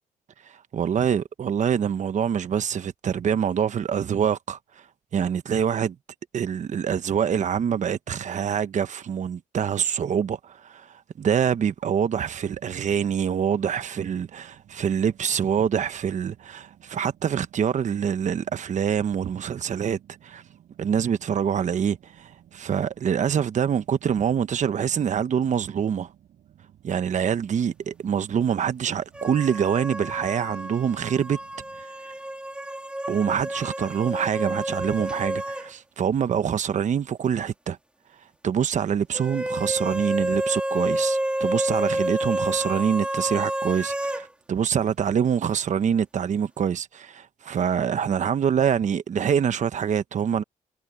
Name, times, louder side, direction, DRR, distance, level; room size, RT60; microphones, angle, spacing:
voice 1, 0.5-4.6 5.1-5.9 6.3-20.4 20.8-26.1 26.8-31.4 33.1-37.8 38.4-50.4, right 8 dB, 55° right, 1.1 m, -25 dB
sound 1, 12.2-31.8, right 11 dB, 75° right, 7.8 m, -56 dB
sound 2, 29.1-35.7 36.0-36.1 39.1-44.3, right 1 dB, 5° right, 3.1 m, -29 dB
cardioid pair, 70°, 15 cm